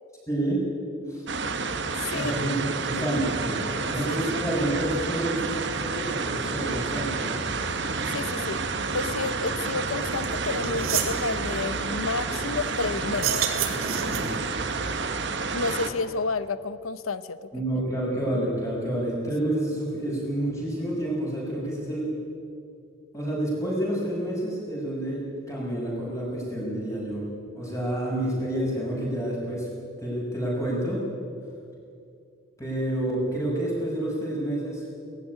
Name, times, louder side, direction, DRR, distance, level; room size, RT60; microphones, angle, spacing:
voice 1, 0.3-0.6 1.1-1.3 2.1-3.6 3.8-7.3 14.0-14.3 17.5-22.1 23.1-27.3 27.5-29.7 30.0-31.0 32.6-34.8, right 1 dB, 15° left, -4 dB, 6.3 m, -29 dB
sound 1, 1.3-15.9, right 4 dB, 55° right, 1.3 m, -30 dB
voice 2, 2.0-2.3 8.1-8.6 8.9-13.4 15.5-17.5, left 4 dB, 80° left, 14 dB, 0.8 m, -30 dB
sound 2, 10.2-10.3 10.6-11.2 13.1-14.4, right 7 dB, 80° right, 2.3 m, -28 dB
18.5 x 15.5 x 9.7 m, 2.4 s
head